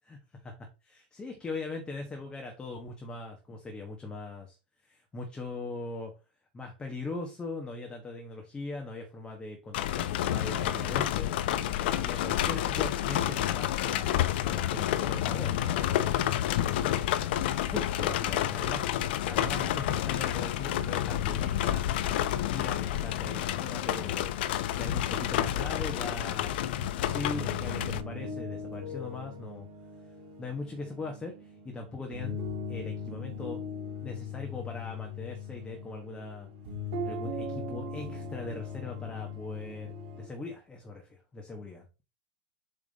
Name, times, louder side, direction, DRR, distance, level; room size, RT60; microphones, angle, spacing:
voice 1, 0.1-4.6 4.8-6.1 6.5-11.3 11.8-16.0 17.6-18.9 19.2-21.9 22.5-24.3 24.6-29.7 30.4-32.4 32.7-33.6 34.0-36.5 37.0-41.9, left 3 dB, 15° left, 2 dB, 1.2 m, -40 dB
sound 1, 9.7-28.0, left 12 dB, 65° left, 0.6 m, -29 dB
sound 2, 27.0-40.3, left 3 dB, 50° right, 2.9 m, -39 dB
7.3 x 3.5 x 4.1 m, 0.31 s
hypercardioid pair, 125°, 6 cm